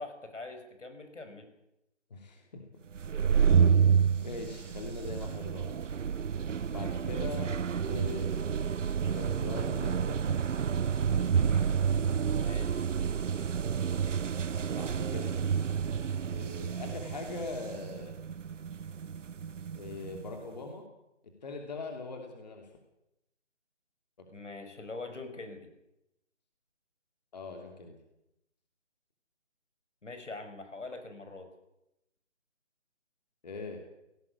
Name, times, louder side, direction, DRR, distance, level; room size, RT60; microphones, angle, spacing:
voice 1, 0.0-1.5 7.5-7.8 12.3-12.8 24.3-25.7 30.0-31.5, left 3 dB, 75° left, 7 dB, 5.9 m, -43 dB
voice 2, 2.1-2.6 3.2-3.4 4.2-5.8 6.7-7.5 7.8-8.6 9.1-10.2 13.6-13.7 14.8-15.4 16.2-18.2 19.7-20.8 21.4-22.7 27.3-28.0 33.4-33.8, left 3 dB, 35° left, 3 dB, 2.9 m, -41 dB
sound 1, 2.9-20.3, right 7 dB, 85° right, 0.7 m, -29 dB
18.0 x 17.5 x 8.5 m, 0.87 s
figure-of-eight pair, 165°, 36 cm